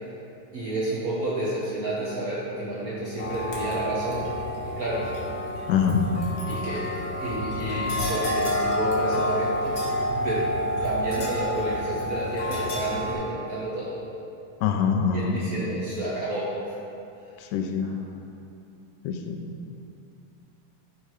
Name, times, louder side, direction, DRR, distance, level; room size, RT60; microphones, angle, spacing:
voice 1, 0.5-4.3 4.6-5.1 6.5-10.5 10.8-14.0 15.1-16.5 17.8-17.9, right 1 dB, 90° right, -7 dB, 0.8 m, -30 dB
sound 1, 3.2-13.1, equal, 40° left, 1.4 m, -29 dB
voice 2, 5.7-6.0 14.6-15.4 17.4-17.9 19.0-19.4, left 7 dB, 80° left, 4 dB, 2.1 m, -24 dB
12.5 x 4.8 x 4.9 m, 2.7 s
omnidirectional pair, 3.7 m